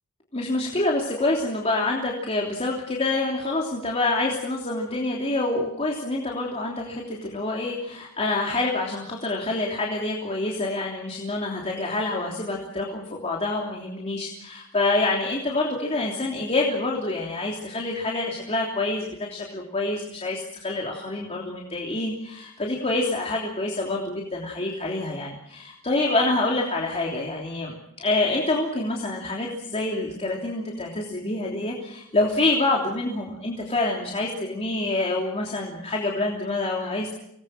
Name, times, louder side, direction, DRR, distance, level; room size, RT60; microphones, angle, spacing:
voice 1, 0.3-37.1, left 2 dB, 30° left, -1 dB, 3.1 m, -27 dB
25.5 x 19.5 x 7.6 m, 0.77 s
head